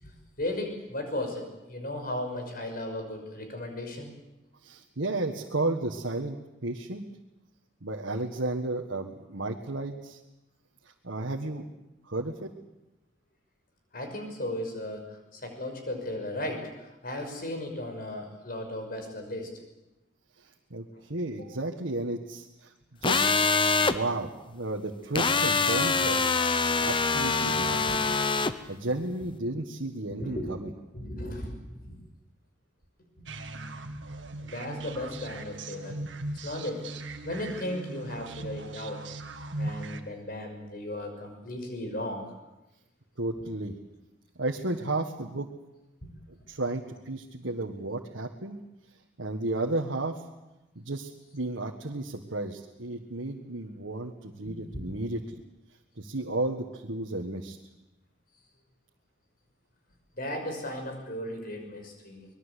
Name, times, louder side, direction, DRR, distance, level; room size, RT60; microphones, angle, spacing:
voice 1, 0.4-4.1 13.9-15.0 15.3-19.5 21.3-21.5 27.9-28.0 30.2-30.5 30.9-31.5 31.8-32.0 33.2-33.3 34.4-36.0 36.4-36.8 37.2-39.0 39.6-42.3 54.7-54.8 60.2-62.3, left 1 dB, 50° left, 4 dB, 5.9 m, -35 dB
voice 2, 4.6-6.4 6.6-7.0 7.8-10.2 11.0-11.7 12.1-12.5 20.7-22.7 23.0-23.3 23.8-26.2 26.8-28.2 28.7-30.7 43.2-43.7 44.4-45.5 46.5-48.6 49.2-50.2 50.8-55.2 56.0-57.6, right 2 dB, 90° right, 1 dB, 1.7 m, -33 dB
sound 1, 23.0-23.9 25.1-28.5, left 4 dB, 25° left, 1.0 m, -24 dB
sound 2, 33.3-40.0, right 2 dB, 70° right, 2.0 m, -39 dB
25.0 x 21.0 x 8.4 m, 0.98 s
head